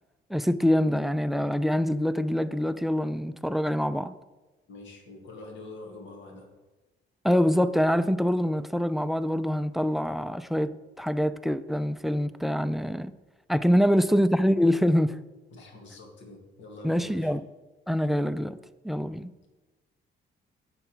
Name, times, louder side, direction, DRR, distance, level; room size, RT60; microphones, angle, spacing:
voice 1, 0.3-4.1 7.2-13.1 13.5-15.2 16.8-17.4 17.9-18.6 18.8-19.3, equal, ahead, 0.4 m, -25 dB
voice 2, 4.7-6.5 13.8-14.0 15.5-17.3, left 2 dB, 70° left, 2.1 m, -45 dB
9.6 x 7.0 x 4.7 m
cardioid pair, 90°, 20 cm